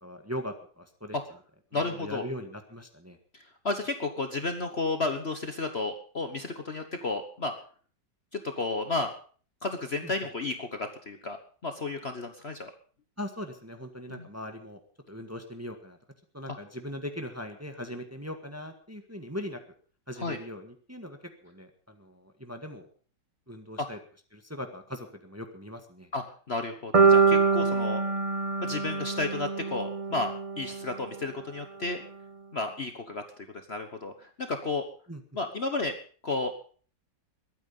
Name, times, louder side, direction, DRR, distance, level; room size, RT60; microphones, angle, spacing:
voice 1, 0.0-1.2 1.7-3.2 10.0-10.1 13.2-14.8 15.1-16.0 16.3-19.6 20.1-22.9 23.5-24.0 24.3-26.1 35.1-35.2, equal, 10° right, 5 dB, 1.5 m, -40 dB
voice 2, 1.7-2.3 3.3-7.5 8.3-9.1 9.6-11.4 11.6-12.7 14.1-14.2 20.2-20.4 26.1-28.0 28.6-32.0 32.5-33.2 33.7-34.8 35.3-35.9 36.2-36.5, left 3 dB, 40° left, 6 dB, 1.3 m, -32 dB
sound 1, 26.9-31.0, right 5 dB, 40° right, 0.5 m, -24 dB
21.5 x 9.3 x 5.4 m, 0.43 s
omnidirectional pair, 1.9 m